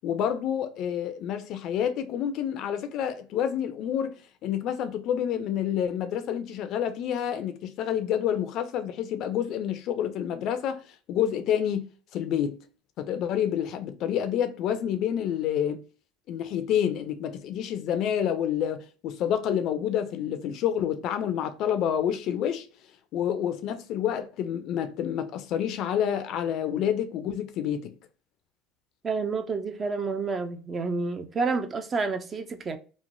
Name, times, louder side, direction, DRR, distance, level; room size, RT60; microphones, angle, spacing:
voice 1, 0.0-11.9 12.1-12.6 13.0-15.8 16.3-22.7 23.1-27.9, left 9 dB, 55° left, 0.4 m, -28 dB
voice 2, 29.0-32.8, right 4 dB, 25° right, 0.4 m, -29 dB
3.0 x 2.1 x 2.5 m
supercardioid pair, 110°, 0 cm